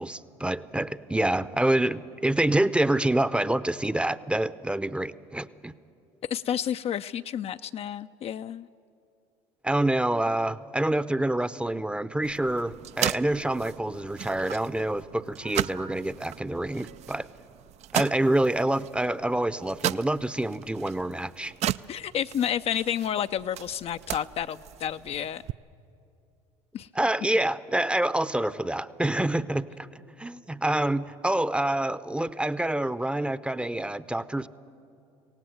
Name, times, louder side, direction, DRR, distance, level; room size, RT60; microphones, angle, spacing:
voice 1, 0.0-5.7 9.6-17.3 17.9-21.5 26.9-29.9 30.2-34.5, right 1 dB, 5° right, 15 dB, 0.7 m, -27 dB
voice 2, 6.3-8.7 21.9-25.4 26.7-26.9, left 9 dB, 45° left, 11 dB, 0.5 m, -30 dB
sound 1, 12.2-25.5, right 12 dB, 50° right, 0.4 m, -36 dB
26.5 x 17.5 x 7.9 m, 2.6 s
hypercardioid pair, 70°, 15 cm